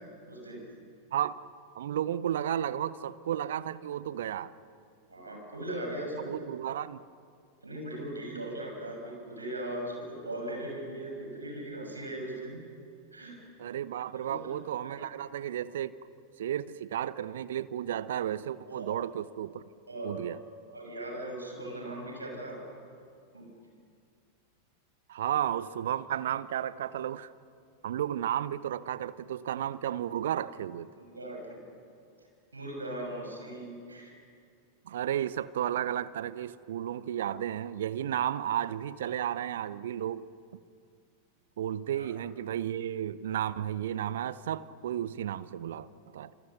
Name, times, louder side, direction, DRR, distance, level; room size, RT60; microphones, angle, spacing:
voice 1, 0.3-0.6 5.1-6.3 7.6-12.6 13.1-13.4 14.1-14.5 14.8-15.0 18.7-18.9 19.9-20.2 20.7-22.6 23.3-23.5 31.1-31.4 32.5-34.1 41.9-42.1, right 1 dB, 80° right, 1 dB, 6.2 m, -39 dB
voice 2, 1.8-4.5 6.2-7.0 8.3-8.4 13.6-16.0 16.4-19.6 20.0-20.4 25.1-27.3 27.8-30.9 34.9-40.3 41.6-45.9 46.1-46.3, right 10 dB, 60° right, 17 dB, 0.8 m, -33 dB
30.0 x 27.5 x 6.7 m, 2.3 s
figure-of-eight pair, 90°, 0 cm